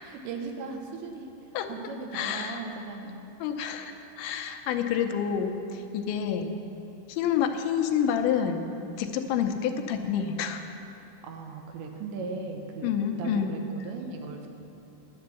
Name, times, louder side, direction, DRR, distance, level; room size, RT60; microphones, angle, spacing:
voice 1, 0.0-1.3 1.7-3.2 5.9-6.0 8.7-9.1 11.2-14.5, right 4 dB, 80° right, 3 dB, 3.2 m, -38 dB
voice 2, 2.1-2.6 3.4-3.9 4.2-6.5 7.1-8.6 9.0-10.6 12.8-13.5, left 8 dB, 90° left, 5 dB, 3.1 m, -28 dB
11.0 x 9.6 x 7.0 m, 2.9 s
omnidirectional pair, 5.1 m